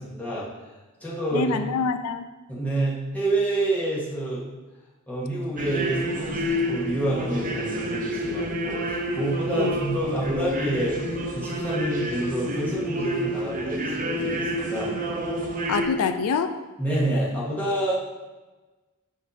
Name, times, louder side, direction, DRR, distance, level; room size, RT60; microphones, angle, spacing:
voice 1, 0.0-1.6 2.5-4.5 5.1-11.0 11.3-14.9 16.8-17.9, right 1 dB, 5° left, -7 dB, 1.5 m, -28 dB
voice 2, 1.3-2.3 9.6-9.7 15.7-16.5, left 5 dB, 85° left, 9 dB, 0.4 m, -25 dB
sound 1, 5.6-15.9, equal, 40° right, 0.7 m, -28 dB
6.5 x 3.4 x 5.5 m, 1.2 s
head